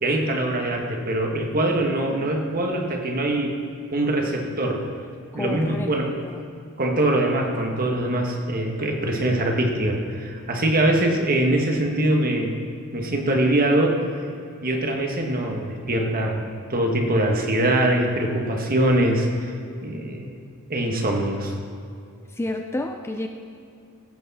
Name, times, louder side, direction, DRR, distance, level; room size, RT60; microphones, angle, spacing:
voice 1, 0.0-3.5 3.9-4.8 5.3-6.1 6.8-12.5 12.9-14.0 14.6-19.5 19.8-20.3 20.7-21.5, right 1 dB, 40° right, 2 dB, 1.4 m, -23 dB
voice 2, 5.3-5.9 6.2-6.4 19.9-20.2 22.3-23.3, left 1 dB, 10° left, 5 dB, 0.4 m, -30 dB
15.5 x 8.3 x 4.2 m, 2.5 s
head